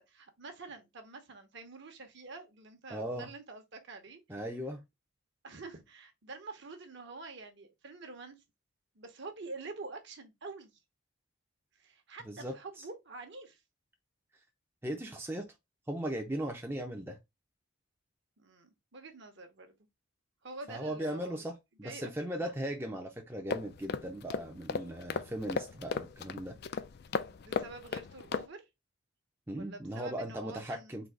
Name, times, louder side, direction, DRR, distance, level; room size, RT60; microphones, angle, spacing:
voice 1, 0.0-4.2 5.4-8.4 8.9-10.8 11.8-13.6 18.4-19.7 20.4-21.4 21.8-22.1 22.4-22.5 27.3-28.7 29.5-30.9, right 3 dB, 55° right, 1.0 m, -47 dB
voice 2, 2.9-3.3 4.3-4.8 12.3-12.5 14.8-15.5 15.9-17.2 20.7-21.5 21.8-26.5 29.5-31.1, right 1 dB, 10° right, 0.5 m, -38 dB
sound 1, 23.5-28.5, left 5 dB, 50° left, 0.4 m, -36 dB
4.0 x 2.8 x 4.6 m
head